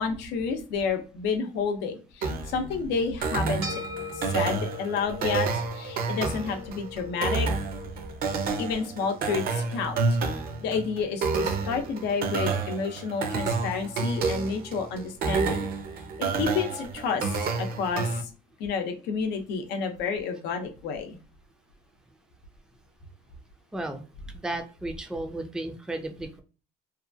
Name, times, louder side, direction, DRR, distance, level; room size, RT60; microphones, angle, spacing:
voice 1, 0.0-3.8 4.1-5.5 5.7-7.5 8.6-10.0 10.6-15.7 16.2-18.3 18.6-21.2, left 5 dB, 85° left, 5 dB, 0.6 m, -30 dB
sound 1, 2.2-18.2, right 4 dB, 60° right, 0.6 m, -29 dB
sound 2, 3.6-12.2, left 4 dB, 90° right, 1.2 m, -43 dB
voice 2, 23.7-24.1 24.3-26.4, right 2 dB, 5° right, 6 dB, 0.4 m, -34 dB
2.7 x 2.3 x 2.6 m, 0.34 s
cardioid pair, 110°, 17 cm